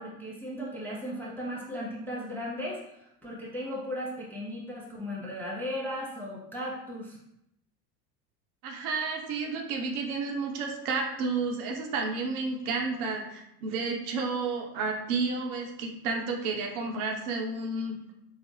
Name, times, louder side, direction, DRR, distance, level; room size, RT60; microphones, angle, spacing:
voice 1, 0.0-7.2, equal, 5° left, -5 dB, 0.3 m, -36 dB
voice 2, 8.6-18.1, right 4 dB, 65° right, 2 dB, 0.8 m, -31 dB
3.8 x 2.0 x 3.0 m, 0.81 s
hypercardioid pair, 80°, 47 cm